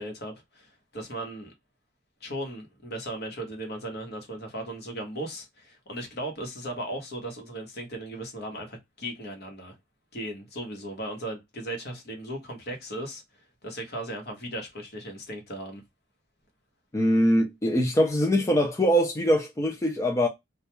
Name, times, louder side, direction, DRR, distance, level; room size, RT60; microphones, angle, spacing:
voice 1, 0.0-1.5 2.2-9.8 10.1-13.2 13.6-15.8, right 1 dB, 60° left, 1.0 m, -37 dB
voice 2, 16.9-20.3, equal, 15° left, 0.4 m, -23 dB
2.3 x 2.2 x 2.9 m
head